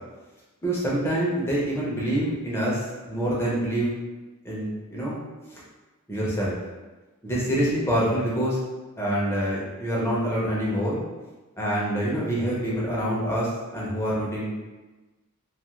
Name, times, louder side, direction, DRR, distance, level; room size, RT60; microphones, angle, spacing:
voice 1, 0.6-3.9 4.4-5.2 5.5-5.6 6.1-6.6 7.2-8.6 9.0-11.0 11.6-14.5, right 1 dB, 10° left, -6 dB, 0.6 m, -26 dB
2.3 x 2.3 x 2.9 m, 1.2 s
head